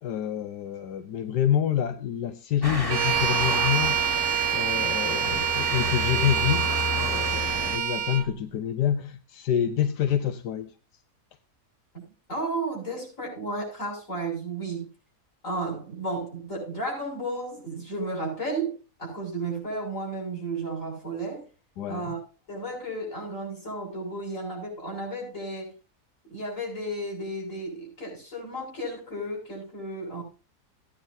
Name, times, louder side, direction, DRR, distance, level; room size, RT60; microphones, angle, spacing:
voice 1, 0.0-6.7 7.0-10.7 21.8-22.1, left 10 dB, 85° left, 1.4 m, -27 dB
Motor vehicle (road) / Siren, 2.6-7.8, left 2 dB, 15° left, 1.5 m, -32 dB
Bowed string instrument, 2.9-8.3, right 10 dB, 85° right, 1.7 m, -26 dB
voice 2, 12.3-14.9 15.4-21.4 21.9-22.2 22.5-25.7 26.2-30.2, right 2 dB, 50° left, 7.0 m, -33 dB
17.0 x 9.8 x 2.7 m
omnidirectional pair, 1.7 m